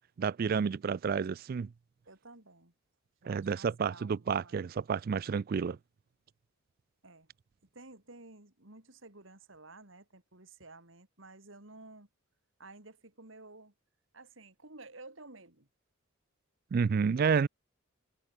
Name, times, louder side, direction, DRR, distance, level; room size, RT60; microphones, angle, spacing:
voice 1, 0.2-1.7 3.3-5.8 16.7-17.5, right 6 dB, 45° right, 0.3 m, -30 dB
voice 2, 2.1-2.7 3.2-4.6 7.0-7.3 7.7-12.1 12.6-13.7 14.1-15.7, right 2 dB, 65° right, 3.4 m, -53 dB
head